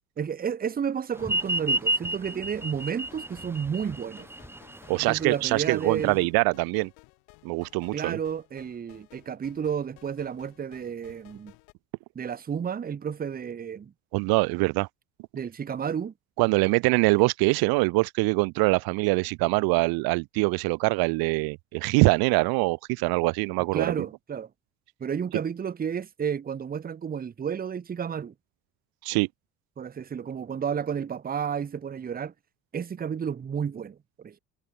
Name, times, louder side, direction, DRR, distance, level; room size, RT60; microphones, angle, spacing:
voice 1, 0.2-4.3 4.9-6.3 7.9-11.5 12.1-13.9 15.3-16.1 23.7-24.5 25.0-28.3 29.8-32.3 32.7-34.4, right 7 dB, 25° right, 0.6 m, -31 dB
sound 1, 1.2-11.7, left 33 dB, 80° left, 5.8 m, -57 dB
sound 2, 1.2-6.2, right 1 dB, 5° right, 1.0 m, -30 dB
voice 2, 4.9-6.9 7.4-8.2 14.1-14.9 16.4-24.0 29.0-29.3, right 26 dB, 70° right, 0.5 m, -24 dB
hypercardioid pair, 60°, 38 cm